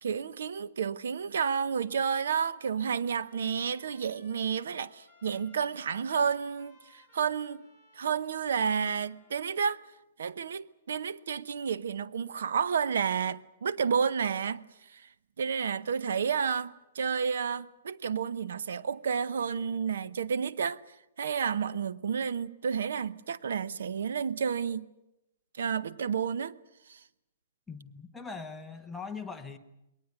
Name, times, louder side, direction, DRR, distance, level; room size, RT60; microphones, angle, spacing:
voice 1, 0.0-7.7 8.0-9.8 10.2-14.6 14.9-15.1 15.4-20.8 21.2-24.8 25.6-26.6 26.9-27.0, right 6 dB, 70° right, 0.8 m, -31 dB
Trumpet, 1.6-9.8, left 2 dB, 15° right, 5.1 m, -62 dB
voice 2, 27.7-29.6, left 5 dB, 5° left, 0.9 m, -41 dB
21.5 x 18.5 x 9.4 m
hypercardioid pair, 175°, 0 cm